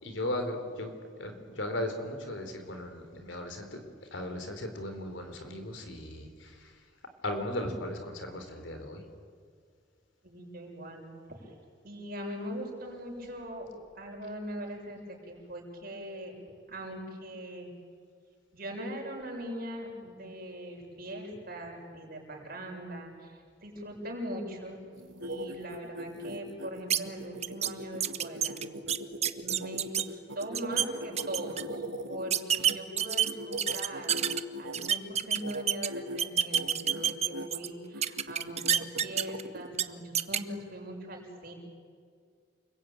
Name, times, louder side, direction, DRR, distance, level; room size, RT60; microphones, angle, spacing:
voice 1, 0.0-3.8 4.1-6.7 7.2-9.0, left 1 dB, 75° left, 7 dB, 4.0 m, -37 dB
voice 2, 10.2-11.5 11.8-13.7 13.9-16.4 16.7-17.7 18.5-24.8 25.2-28.6 29.4-34.2 34.6-41.5, equal, 55° right, 1 dB, 6.9 m, -41 dB
sound 1, 24.9-32.8 33.2-34.9 35.3-35.6 35.9-36.2 36.5-37.5 37.9-39.7, right 1 dB, 90° right, 2.3 m, -40 dB
sound 2, 26.9-27.0 27.4-27.7 28.0-30.0 30.4-30.9 31.2-31.6 32.3-34.4 34.7-35.9 36.2-37.7 38.0-39.4 39.7-39.8 40.2-40.4, right 9 dB, 35° right, 0.9 m, -27 dB
29.0 x 22.0 x 9.2 m, 2.2 s
head